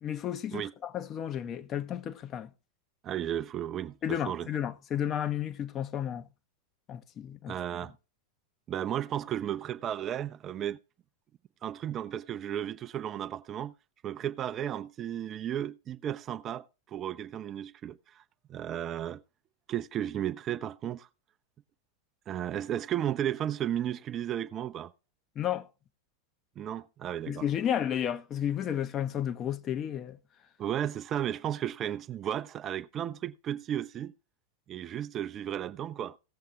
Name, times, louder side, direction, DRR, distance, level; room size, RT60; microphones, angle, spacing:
voice 1, 0.0-2.5 4.0-6.3 6.9-7.6 25.4-25.7 27.3-30.2, left 10 dB, 30° left, 0.7 m, -32 dB
voice 2, 3.0-4.5 7.5-7.9 8.7-10.8 11.6-13.7 14.0-18.2 18.5-19.2 19.7-21.1 22.3-24.9 26.6-27.5 30.6-34.1 34.7-36.2, right 10 dB, 30° right, 0.4 m, -34 dB
18.0 x 7.3 x 2.3 m
figure-of-eight pair, 90°, 0 cm